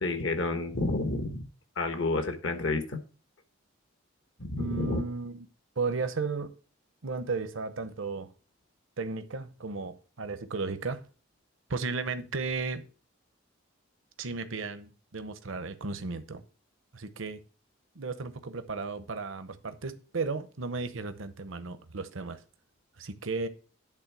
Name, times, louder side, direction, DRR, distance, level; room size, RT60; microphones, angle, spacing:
voice 1, 0.0-1.5 1.8-3.0 4.4-5.0, left 2 dB, 65° left, 7 dB, 1.2 m, -30 dB
voice 2, 4.6-5.5 5.8-6.5 7.0-8.3 9.0-11.0 11.7-12.8 14.2-16.4 16.9-17.4 17.9-22.4 23.0-23.5, right 4 dB, 70° right, 11 dB, 0.8 m, -34 dB
10.5 x 3.7 x 5.9 m, 0.38 s
head